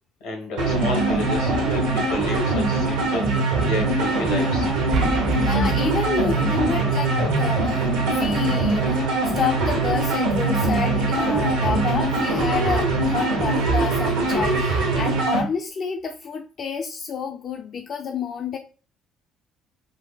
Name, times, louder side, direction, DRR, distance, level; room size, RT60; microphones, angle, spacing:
voice 1, 0.2-3.3 3.6-4.7, left 2 dB, 80° left, 2 dB, 1.1 m, -31 dB
sound 1, 0.6-15.4, right 3 dB, 90° right, 1.0 m, -22 dB
sound 2, 4.7-8.6, right 4 dB, 60° right, 0.5 m, -31 dB
voice 2, 5.3-18.6, left 6 dB, 50° left, 3 dB, 0.3 m, -29 dB
3.9 x 2.1 x 2.3 m, 0.37 s
hypercardioid pair, 65°, 0 cm